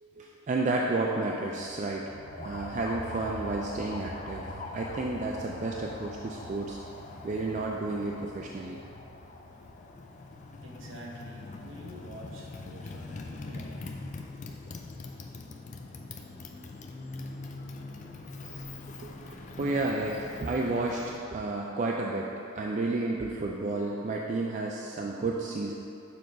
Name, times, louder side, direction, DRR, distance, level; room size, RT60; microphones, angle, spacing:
voice 1, 0.0-2.1 2.4-6.8 7.2-8.8 18.4-18.6 19.0-25.7, right 2 dB, 35° right, -1 dB, 0.3 m, -31 dB
sound 1, 1.6-13.1, right 1 dB, 85° right, 0.8 m, -48 dB
Motorcycle, 2.3-21.3, left 3 dB, 35° left, 0.4 m, -43 dB
voice 2, 10.6-14.0, right 1 dB, 65° right, -2 dB, 1.0 m, -47 dB
6.9 x 4.8 x 3.9 m, 2.7 s
head